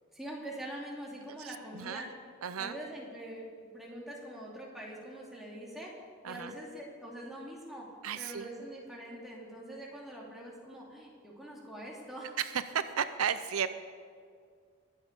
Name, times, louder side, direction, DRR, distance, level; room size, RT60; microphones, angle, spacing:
voice 1, 0.1-2.1 2.5-3.5 3.7-6.0 6.3-12.4, right 1 dB, ahead, -4 dB, 2.6 m, -44 dB
voice 2, 1.4-2.0 2.4-2.8 6.2-6.5 8.0-8.5 12.4-13.7, right 8 dB, 90° right, 12 dB, 0.6 m, -34 dB
22.0 x 7.4 x 5.3 m, 2.1 s
head